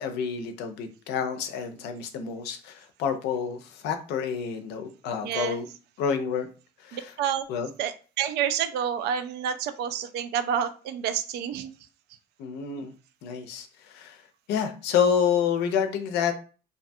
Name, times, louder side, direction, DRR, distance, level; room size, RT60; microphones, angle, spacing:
voice 1, 0.0-5.7 6.0-6.5 6.8-7.1 7.5-7.7 12.4-12.9 13.2-14.2 14.5-16.3, left 7 dB, 85° left, 7 dB, 0.5 m, -28 dB
voice 2, 5.2-5.6 6.9-7.4 7.8-11.7 12.8-12.9, right 8 dB, 75° right, 11 dB, 0.4 m, -29 dB
2.6 x 2.3 x 2.6 m, 0.36 s
cardioid pair, 110°, 17 cm